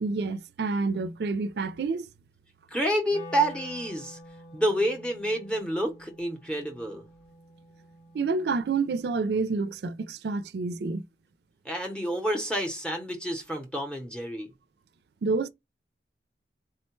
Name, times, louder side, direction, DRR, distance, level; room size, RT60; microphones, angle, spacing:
voice 1, 0.0-2.1 8.1-11.0 15.2-15.5, right 4 dB, 65° right, 0.4 m, -28 dB
voice 2, 2.7-4.2 4.5-7.0 11.6-14.5, right 1 dB, 5° left, 0.7 m, -29 dB
Wind instrument woodwind instrument, 3.1-9.2, left 1 dB, 40° left, 0.7 m, -48 dB
3.6 x 2.1 x 4.3 m
head